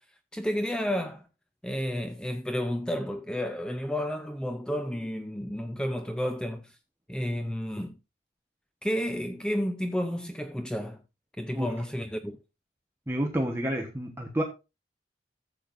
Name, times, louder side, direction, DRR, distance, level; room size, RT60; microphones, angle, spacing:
voice 1, 0.3-1.3 1.6-6.8 7.1-8.0 8.8-11.0 11.4-12.4, equal, 5° left, 0.6 m, -31 dB
voice 2, 13.1-14.4, right 1 dB, 15° right, 1.2 m, -29 dB
14.0 x 8.0 x 2.6 m
head